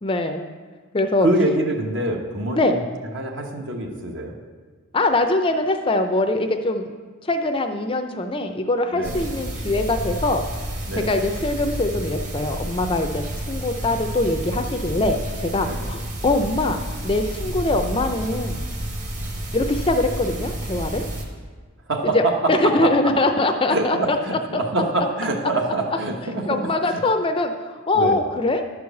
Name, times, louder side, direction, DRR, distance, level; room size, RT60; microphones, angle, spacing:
voice 1, 0.0-0.4 0.9-1.3 2.5-2.8 4.9-7.0 7.3-10.4 11.1-15.2 15.5-16.8 17.0-18.6 19.5-21.0 22.0-22.2 22.5-24.0 24.3-24.4 26.5-27.5 27.9-28.7, left 2 dB, 25° left, 6 dB, 0.5 m, -22 dB
voice 2, 1.2-2.8 3.1-4.4 8.9-9.3 10.8-11.1 15.6-15.9 21.9-23.1 23.7-27.0 27.9-28.2, right 2 dB, 60° right, 2 dB, 1.2 m, -25 dB
sound 1, 9.0-21.2, right 1 dB, 35° right, 1.3 m, -30 dB
11.0 x 4.8 x 7.1 m, 1.5 s
head